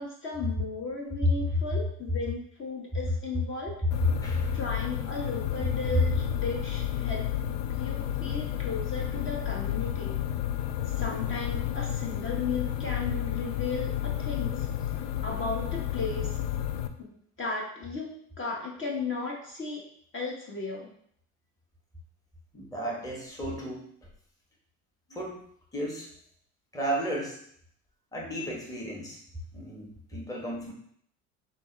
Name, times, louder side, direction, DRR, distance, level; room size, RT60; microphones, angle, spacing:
voice 1, 0.0-3.7 4.5-7.3 7.8-10.1 11.0-14.7 15.2-16.3 17.0-17.1 17.4-18.1 18.4-19.8 20.1-20.9, left 4 dB, 30° left, -2 dB, 1.2 m, -35 dB
sound 1, 3.9-16.9, left 11 dB, 75° left, 0.5 m, -31 dB
voice 2, 22.5-23.8 25.1-25.4 25.7-26.1 26.7-27.4 28.1-29.2 29.5-30.7, right 1 dB, 10° left, -3 dB, 1.2 m, -34 dB
5.8 x 2.5 x 3.3 m, 0.65 s
hypercardioid pair, 75°, 39 cm